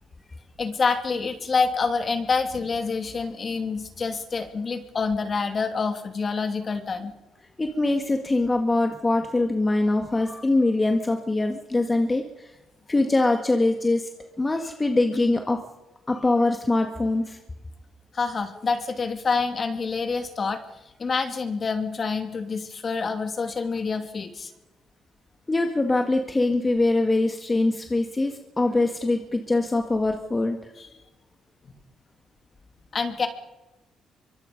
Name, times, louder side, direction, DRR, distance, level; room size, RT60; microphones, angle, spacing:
voice 1, 0.6-7.1 18.1-20.6 21.0-24.5 30.8-30.9 31.6-31.7 32.9-33.3, left 4 dB, 40° left, 7 dB, 2.8 m, -27 dB
voice 2, 7.6-12.5 12.9-14.1 14.4-15.6 16.1-17.4 25.5-30.6, left 2 dB, 20° left, 4 dB, 1.8 m, -23 dB
24.5 x 24.0 x 5.3 m, 1.0 s
cardioid pair, 90°, 0 cm